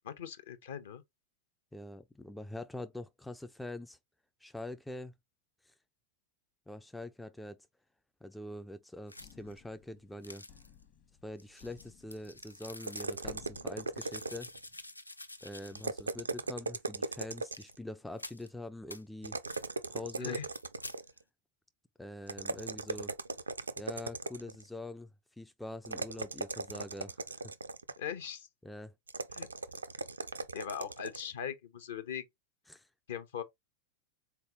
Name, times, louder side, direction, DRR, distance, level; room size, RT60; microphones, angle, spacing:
voice 1, 0.1-1.0 20.2-20.5 28.0-28.5 29.3-29.5 30.5-32.2 33.1-33.4, left 8 dB, 60° left, 0.8 m, -40 dB
voice 2, 1.7-4.0 4.4-5.1 5.6-5.7 6.7-7.7 8.2-10.5 11.2-14.5 15.4-19.4 19.9-20.4 22.0-23.1 23.8-25.1 25.4-27.5 28.6-28.9 32.7-32.9, left 1 dB, 5° left, 0.3 m, -44 dB
sound 1, 9.1-9.6 10.2-10.8 11.4-13.3 13.9-16.0 16.3-16.4 17.4-17.7 18.2-18.5 18.9-19.0 19.5-19.7 20.3-21.0, left 2 dB, 85° left, 0.3 m, -49 dB
sound 2, 9.2-14.8, left 9 dB, 40° left, 1.1 m, -59 dB
sound 3, 12.8-14.7 15.7-17.8 19.2-21.2 22.3-24.6 25.8-28.1 29.1-31.3, right 3 dB, 80° right, 0.4 m, -38 dB
4.0 x 3.4 x 3.0 m
figure-of-eight pair, 90°, 0 cm